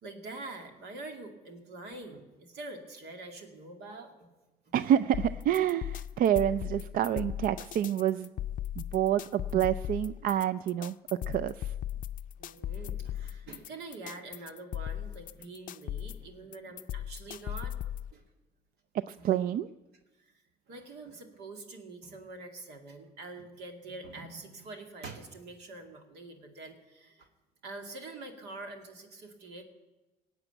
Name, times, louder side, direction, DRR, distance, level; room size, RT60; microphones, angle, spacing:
voice 1, 0.0-4.3 4.6-4.7 12.4-17.7 18.1-18.2 19.2-19.3 20.2-27.3 27.6-29.6, right 2 dB, 80° right, 4 dB, 2.3 m, -45 dB
voice 2, 4.7-8.3 8.8-11.0 11.3-11.7 18.9-19.7, right 11 dB, 55° right, 14 dB, 0.4 m, -28 dB
sound 1, 5.1-18.1, left 11 dB, 50° left, 0.5 m, -38 dB
18.0 x 8.0 x 9.0 m, 1.1 s
cardioid pair, 110°, 17 cm